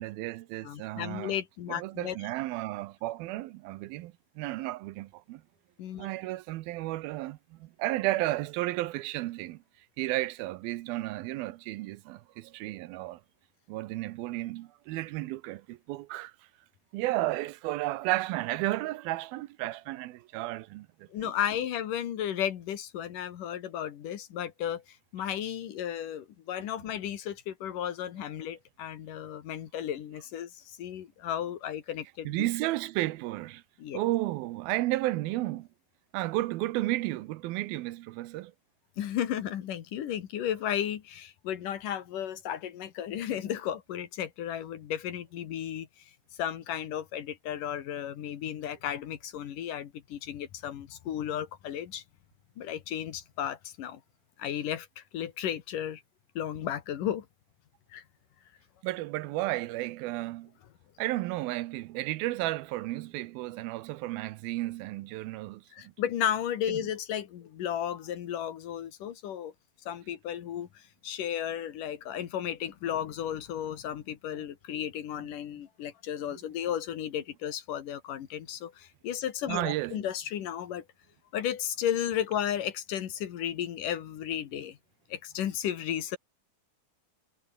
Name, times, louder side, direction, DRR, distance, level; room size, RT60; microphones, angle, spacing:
voice 1, 0.0-1.3 1.7-5.4 6.0-9.6 10.0-13.2 13.7-16.3 16.9-21.3 26.6-26.7 32.3-33.6 33.9-35.7 36.1-38.5 58.8-60.5 61.0-65.9 66.7-66.8 79.5-80.0, right 17 dB, 80° right, 2.6 m, -33 dB
voice 2, 0.6-2.2 5.8-6.1 21.1-32.5 33.8-34.0 39.0-45.9 46.4-52.0 52.6-54.0 54.4-56.0 56.4-57.3 57.9-58.0 65.7-69.5 69.9-80.8 81.3-84.8 85.1-86.2, left 10 dB, 65° left, 3.1 m, -34 dB
omnidirectional pair, 4.3 m